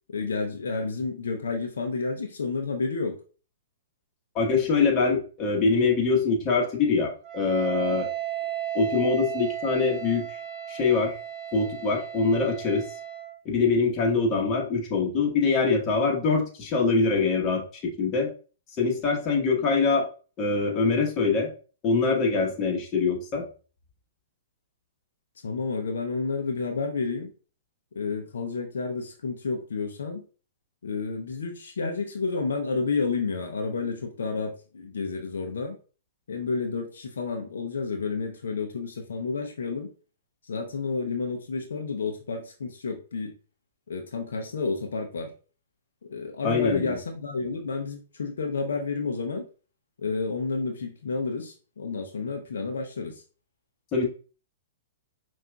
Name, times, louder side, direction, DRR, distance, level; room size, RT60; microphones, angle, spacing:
voice 1, 0.1-3.2 25.4-27.3 28.0-30.3 30.8-35.8 36.3-39.9 40.4-43.3 43.9-45.3 46.0-49.5 50.0-53.2, left 4 dB, 75° left, 3 dB, 0.6 m, -30 dB
voice 2, 4.3-8.1 8.7-10.4 10.7-11.1 11.5-12.8 13.4-18.3 18.8-20.1 20.4-21.5 21.8-23.4 46.4-47.0 53.9-54.1, left 4 dB, 30° left, 0 dB, 1.2 m, -24 dB
Wind instrument woodwind instrument, 7.2-13.4, right 11 dB, 35° right, 0.8 m, -34 dB
5.6 x 2.5 x 2.3 m, 0.38 s
hypercardioid pair, 120°, 0 cm